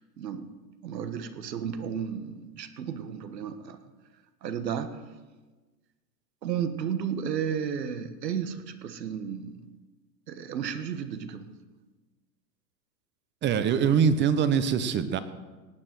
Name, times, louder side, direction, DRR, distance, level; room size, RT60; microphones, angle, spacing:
voice 1, 0.2-0.5 0.8-3.8 4.4-4.9 6.4-9.6 10.3-11.6, right 8 dB, 85° right, 9 dB, 1.5 m, -33 dB
voice 2, 13.4-15.2, right 7 dB, 25° right, 12 dB, 0.8 m, -23 dB
18.0 x 6.8 x 7.7 m, 1.2 s
hypercardioid pair, 125°, 48 cm